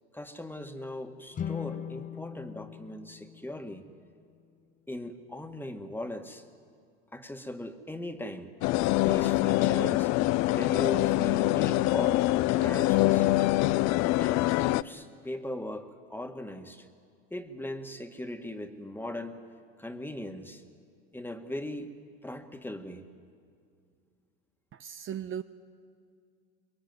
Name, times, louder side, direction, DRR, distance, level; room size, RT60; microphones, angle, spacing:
voice 1, 0.1-3.8 4.9-6.4 7.1-8.5 9.0-10.1 10.5-13.5 14.2-16.9 17.3-19.4 19.8-20.6 21.1-21.9 22.2-23.0, left 1 dB, 5° left, 6 dB, 2.0 m, -39 dB
sound 1, 1.3-4.6, left 9 dB, 25° left, 0.7 m, -40 dB
sound 2, 8.6-14.8, left 18 dB, 60° left, 0.7 m, -24 dB
voice 2, 24.7-25.4, right 9 dB, 40° right, 10 dB, 0.9 m, -37 dB
24.5 x 22.5 x 9.5 m, 2.2 s
supercardioid pair, 95°, 31 cm